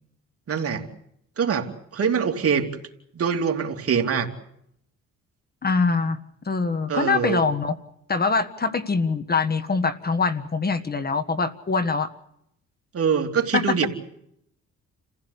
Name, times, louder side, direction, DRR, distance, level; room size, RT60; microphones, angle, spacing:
voice 1, 0.5-0.9 1.4-2.7 3.1-4.3 6.9-7.4 12.9-13.9, right 6 dB, 50° right, 3 dB, 3.1 m, -24 dB
voice 2, 5.6-6.2 6.4-7.8 8.1-12.1 13.5-13.9, left 4 dB, 30° left, 12 dB, 1.6 m, -23 dB
29.5 x 15.5 x 8.3 m, 0.76 s
cardioid pair, 90°, 30 cm